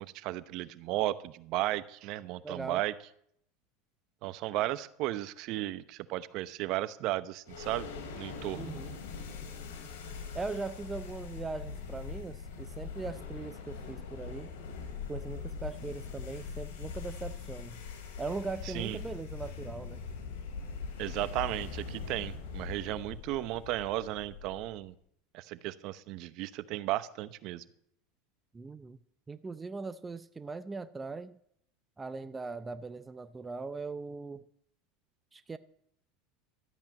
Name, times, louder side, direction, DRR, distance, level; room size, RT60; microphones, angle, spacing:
voice 1, 0.0-2.9 4.2-7.9 8.1-8.7 18.7-19.0 21.0-24.9 25.3-27.6, right 15 dB, 55° right, 15 dB, 0.8 m, -34 dB
voice 2, 2.4-2.8 8.6-9.0 10.3-14.5 15.1-17.8 18.2-20.0 28.5-29.0 29.3-31.4 32.0-34.4 35.3-35.6, right 4 dB, 15° right, 12 dB, 0.6 m, -40 dB
sound 1, 7.5-24.8, left 5 dB, 85° left, 3.7 m, -42 dB
13.0 x 8.9 x 9.1 m, 0.69 s
supercardioid pair, 130°, 0 cm